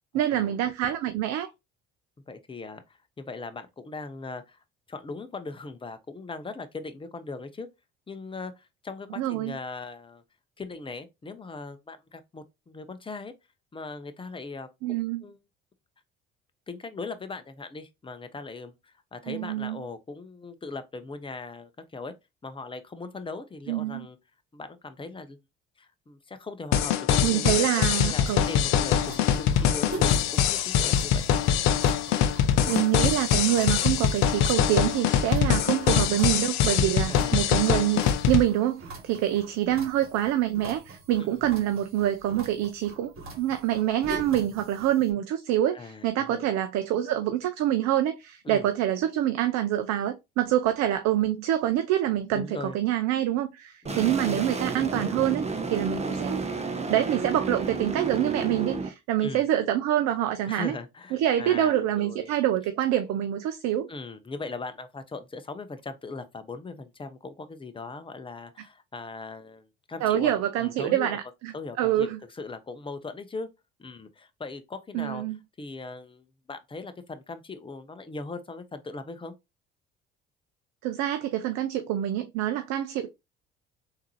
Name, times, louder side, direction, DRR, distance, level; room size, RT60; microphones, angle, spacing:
voice 1, 0.1-1.5 9.2-9.5 14.8-15.2 19.3-19.8 23.7-24.1 27.2-28.4 32.7-43.1 43.4-56.4 56.9-60.7 61.1-63.9 70.0-71.5 71.8-72.2 74.9-75.4 80.8-83.1, right 12 dB, 60° right, 0.5 m, -26 dB
voice 2, 2.3-4.6 4.9-7.7 8.1-10.2 10.6-13.3 13.7-15.4 16.7-22.1 22.4-24.2 24.5-25.4 25.8-31.3 35.4-35.5 37.1-37.4 41.2-41.3 45.7-46.4 48.4-48.7 52.3-52.8 53.8-54.2 59.2-59.5 60.5-62.3 63.9-71.2 71.5-73.5 73.8-75.2 75.6-79.3, left 3 dB, 15° left, 0.7 m, -39 dB
sound 1, 26.7-38.4, left 9 dB, 65° left, 0.6 m, -23 dB
sound 2, 28.3-45.1, right 2 dB, 45° right, 1.6 m, -44 dB
sound 3, 53.9-58.9, right 3 dB, 20° right, 0.8 m, -31 dB
3.6 x 2.8 x 3.1 m
hypercardioid pair, 60°, 31 cm